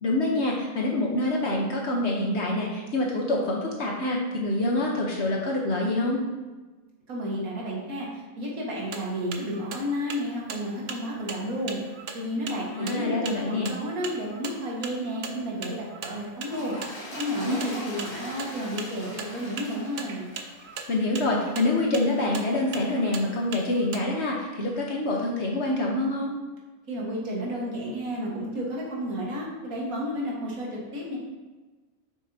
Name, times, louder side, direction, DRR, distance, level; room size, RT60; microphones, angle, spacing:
voice 1, 0.0-6.2 12.7-13.7 17.4-17.6 20.9-26.3, left 2 dB, 55° left, -1 dB, 1.1 m, -26 dB
voice 2, 7.1-11.8 12.1-16.7 17.1-20.3 26.9-31.2, equal, 80° right, -4 dB, 2.0 m, -32 dB
sound 1, 8.8-24.0, right 5 dB, 60° right, 0.7 m, -39 dB
Toilet flush, 16.4-21.9 22.5-22.7, equal, 20° left, 1.4 m, -42 dB
7.7 x 5.9 x 2.7 m, 1.2 s
omnidirectional pair, 1.5 m